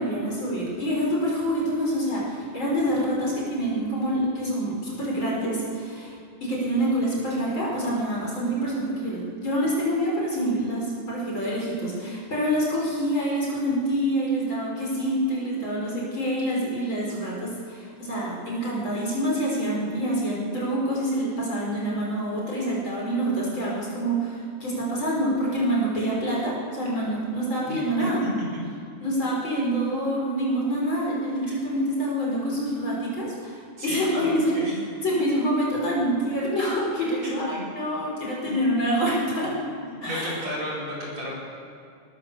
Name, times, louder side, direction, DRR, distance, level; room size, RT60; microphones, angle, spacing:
voice 1, 0.0-6.1 6.4-28.2 29.0-34.6 35.0-39.5 40.0-40.4, equal, 40° left, -4 dB, 5.7 m, -26 dB
voice 2, 33.8-34.8 37.2-37.7 38.5-38.6 39.9-41.3, equal, 55° right, -5 dB, 6.2 m, -33 dB
22.0 x 19.5 x 7.0 m, 2.3 s
omnidirectional pair, 3.5 m